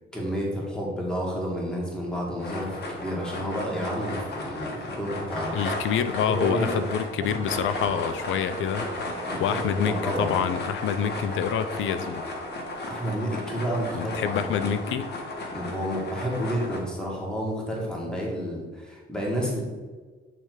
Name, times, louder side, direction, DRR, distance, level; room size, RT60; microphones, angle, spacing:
voice 1, 0.1-5.6 6.3-6.8 9.3-10.3 12.9-14.4 15.5-19.6, equal, 5° left, -3 dB, 2.0 m, -30 dB
sound 1, 2.4-16.8, left 2 dB, 55° left, 1.5 m, -34 dB
voice 2, 5.5-8.9 9.4-12.2 13.9-15.1, left 8 dB, 80° left, 12 dB, 0.5 m, -27 dB
sound 2, 7.2-13.2, right 4 dB, 40° right, 0.6 m, -45 dB
8.9 x 3.3 x 4.7 m, 1.4 s
cardioid pair, 90°, 20 cm